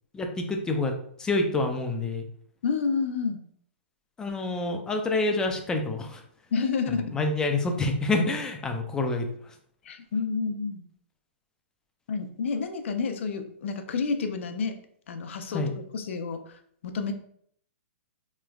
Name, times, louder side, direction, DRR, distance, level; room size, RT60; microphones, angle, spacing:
voice 1, 0.1-0.9 1.2-2.3 4.2-6.2 7.1-9.5 15.5-15.7, left 2 dB, 10° left, 4 dB, 0.4 m, -27 dB
voice 2, 2.6-3.4 6.5-7.0 9.8-10.8 12.1-14.8 15.1-17.1, left 5 dB, 70° left, 7 dB, 0.5 m, -29 dB
3.1 x 2.9 x 2.3 m, 0.64 s
hypercardioid pair, 150°, 7 cm